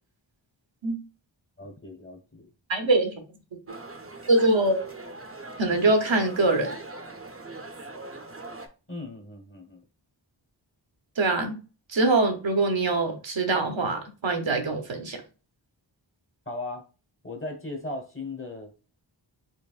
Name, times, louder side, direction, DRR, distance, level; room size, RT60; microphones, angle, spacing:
voice 1, 1.6-2.5 8.9-9.8 16.5-16.8 17.2-18.7, left 2 dB, 25° left, 1.1 m, -37 dB
voice 2, 2.7-3.1 3.7-3.8 4.3-4.8 5.6-6.8 11.2-11.6 11.9-15.2, right 2 dB, 75° right, 0.9 m, -23 dB
sound 1, 3.7-8.7, right 2 dB, 30° right, 0.6 m, -41 dB
4.6 x 3.0 x 2.4 m
wide cardioid pair, 45°, 46 cm